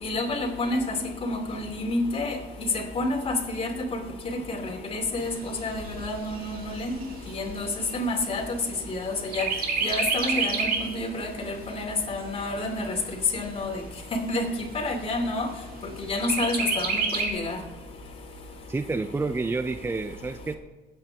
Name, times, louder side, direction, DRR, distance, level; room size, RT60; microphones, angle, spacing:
voice 1, 0.0-0.8 1.2-2.4 2.9-3.7 4.2-5.3 5.6-6.9 7.3-7.7 7.9-8.4 8.9-9.4 9.8-13.0 13.3-13.8 14.1-14.5 14.7-15.5 16.1-17.6, left 2 dB, 35° left, 2 dB, 2.9 m, -29 dB
Chirp tweet, 5.2-8.9 9.3-11.0 11.4-11.5 11.9-12.9 13.5-13.6 13.9-14.0 14.5-15.0 16.2-17.3, right 4 dB, 60° right, 2.2 m, -29 dB
voice 2, 18.7-20.5, right 3 dB, 15° right, 10 dB, 0.5 m, -29 dB
22.0 x 8.9 x 3.6 m, 1.2 s
cardioid pair, 110°, 17 cm